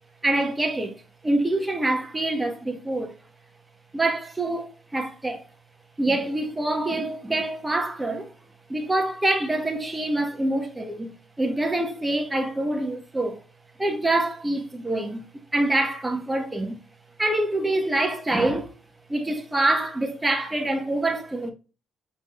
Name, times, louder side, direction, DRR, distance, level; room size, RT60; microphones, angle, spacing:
voice 1, 0.2-1.0 1.2-3.1 3.9-5.4 6.0-8.3 8.7-13.4 13.8-16.8 17.2-18.7 19.1-21.5, right 2 dB, 15° right, 1.2 m, -25 dB
4.9 x 4.2 x 2.4 m
cardioid pair, 90°, 0 cm